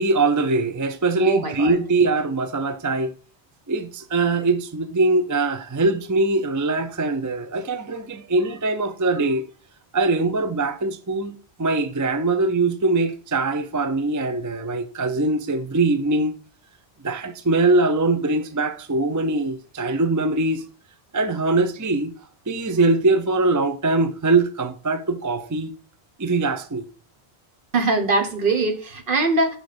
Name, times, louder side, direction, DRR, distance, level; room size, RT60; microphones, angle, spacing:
voice 1, 0.0-3.1 3.7-9.4 9.9-16.3 17.0-20.6 21.1-22.1 22.5-25.7 26.2-26.8, right 3 dB, 25° right, 0.4 m, -22 dB
voice 2, 1.2-1.7 27.7-29.6, right 3 dB, 55° right, 1.2 m, -21 dB
6.3 x 4.7 x 5.0 m
omnidirectional pair, 1.1 m